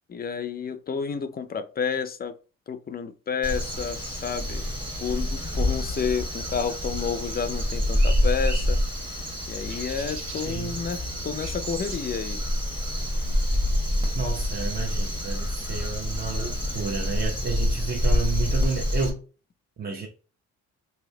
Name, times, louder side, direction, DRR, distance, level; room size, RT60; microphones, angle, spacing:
voice 1, 0.1-2.3 2.7-4.6 5.0-8.8 9.5-12.4, left 6 dB, 30° left, 0.5 m, -30 dB
Crow, 3.4-19.1, left 1 dB, 15° right, 1.2 m, -27 dB
sound 1, 7.9-13.7, right 4 dB, 70° right, 0.8 m, -44 dB
voice 2, 10.4-10.8 14.1-19.2 19.8-20.1, right 5 dB, 30° right, 0.8 m, -31 dB
3.2 x 2.7 x 3.7 m
cardioid pair, 90°, 30 cm